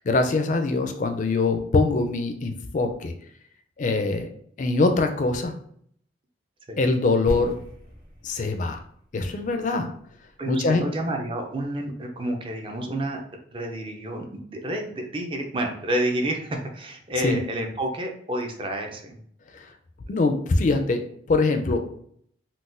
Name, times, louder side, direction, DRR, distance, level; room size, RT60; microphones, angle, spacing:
voice 1, 0.0-3.1 3.8-4.3 4.6-5.5 6.8-7.6 8.2-8.8 9.1-9.9 10.5-10.8 17.2-17.4 19.5-19.7 20.1-21.0 21.3-21.8, left 3 dB, 40° left, 6 dB, 0.4 m, -23 dB
sound 1, 7.3-11.2 11.5-11.6, equal, 50° right, 1.2 m, -38 dB
voice 2, 10.4-13.2 13.5-19.2, right 1 dB, 30° right, 3 dB, 0.4 m, -29 dB
3.9 x 2.2 x 2.5 m, 0.64 s
head